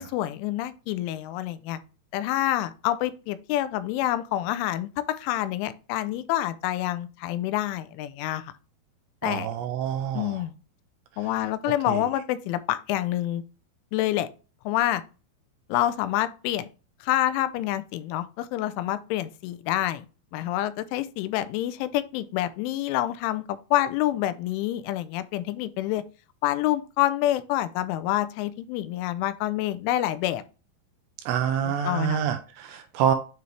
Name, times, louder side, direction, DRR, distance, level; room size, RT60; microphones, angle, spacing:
voice 1, 0.0-1.8 2.1-4.9 5.2-8.5 9.2-9.5 10.1-10.5 11.2-13.4 13.9-14.3 14.7-15.0 15.7-16.7 17.0-20.1 20.3-26.0 26.4-30.4 31.7-32.2, left 14 dB, 85° left, 3.0 m, -27 dB
voice 2, 9.2-10.4 11.9-12.1 31.3-33.2, right 9 dB, 80° right, 2.7 m, -27 dB
9.4 x 4.2 x 3.2 m
omnidirectional pair, 5.5 m